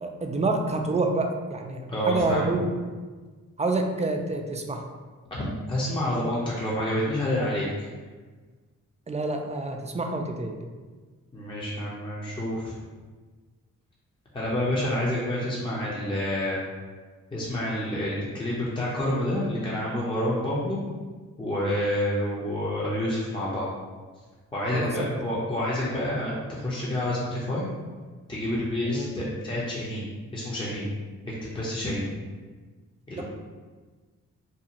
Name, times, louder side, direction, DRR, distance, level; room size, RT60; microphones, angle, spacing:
voice 1, 0.0-2.7 3.6-4.8 9.1-10.6 24.7-25.2 28.9-29.1 33.2-33.3, right 3 dB, 20° right, 3 dB, 0.3 m, -28 dB
voice 2, 1.9-2.5 5.3-7.9 11.3-12.7 14.3-16.6 17.3-20.8 21.4-23.7 24.5-27.6 28.3-30.9 31.3-32.1 33.1-33.2, left 1 dB, 15° left, -7 dB, 0.7 m, -28 dB
2.6 x 2.3 x 2.9 m, 1.4 s
supercardioid pair, 45°, 34 cm